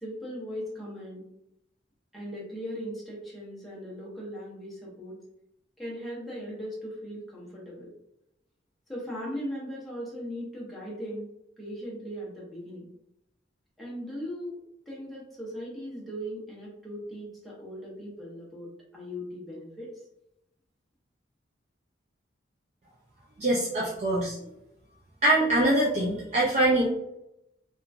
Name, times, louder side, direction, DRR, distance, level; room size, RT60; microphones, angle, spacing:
voice 1, 0.0-1.2 2.1-5.2 5.8-7.9 8.9-11.3 11.6-12.9 13.8-14.6 14.9-20.0, equal, ahead, -6 dB, 0.7 m, -38 dB
voice 2, 23.4-24.4 25.2-26.9, right 1 dB, 40° right, -6 dB, 0.4 m, -23 dB
2.9 x 2.3 x 2.3 m, 0.82 s
head